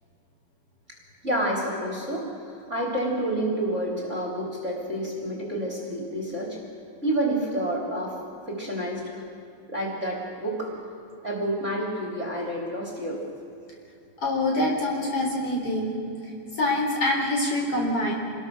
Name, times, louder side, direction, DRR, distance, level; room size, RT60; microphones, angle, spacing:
voice 1, 1.2-6.6 7.0-8.2 8.5-9.2 9.7-10.8 11.2-13.2, right 1 dB, 20° right, -2 dB, 3.6 m, -29 dB
voice 2, 14.2-16.0 16.5-18.1, left 1 dB, 45° left, -1 dB, 4.5 m, -25 dB
26.5 x 21.0 x 6.6 m, 2.6 s
omnidirectional pair, 3.8 m